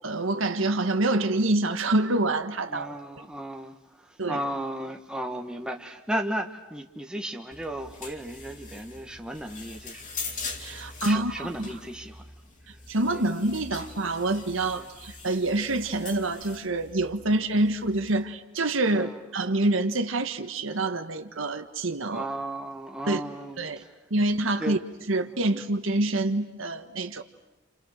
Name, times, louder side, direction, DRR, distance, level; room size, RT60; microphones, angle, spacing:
voice 1, 0.0-2.9 4.2-4.4 10.6-11.7 12.9-22.3 23.1-23.2 23.6-23.8 24.1-24.8 25.1-27.2, right 2 dB, 70° right, 1.6 m, -26 dB
voice 2, 2.7-10.1 11.0-12.2 13.1-13.2 14.8-14.9 17.3-17.4 18.9-19.2 22.1-24.0 24.6-24.8 25.3-25.5, right 1 dB, 5° right, 1.4 m, -35 dB
sound 1, 7.5-18.2, left 4 dB, 40° left, 2.7 m, -42 dB
30.0 x 29.5 x 6.6 m
head